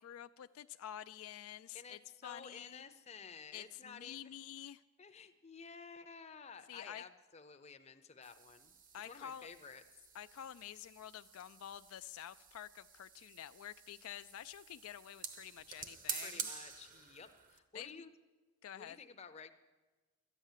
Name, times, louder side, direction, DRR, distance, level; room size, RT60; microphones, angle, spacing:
voice 1, 0.0-2.8 3.5-4.8 6.7-7.1 8.9-9.5 10.1-16.5 17.7-18.0 18.6-19.0, left 10 dB, 75° left, 12 dB, 0.3 m, -49 dB
voice 2, 1.7-4.3 5.0-8.7 9.0-9.8 16.2-18.1 18.8-19.5, left 5 dB, 30° left, 8 dB, 0.6 m, -53 dB
sound 1, 8.2-17.6, right 6 dB, 35° right, 0.9 m, -49 dB
13.0 x 9.1 x 7.4 m, 1.3 s
head